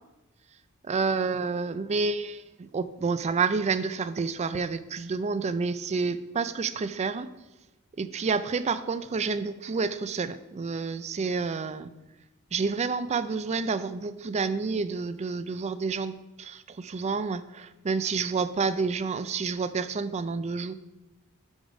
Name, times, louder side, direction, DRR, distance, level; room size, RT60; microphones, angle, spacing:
voice 1, 0.9-7.3 8.0-11.9 12.5-20.7, right 4 dB, 30° right, 14 dB, 0.3 m, -29 dB
7.0 x 5.4 x 5.2 m, 1.0 s
head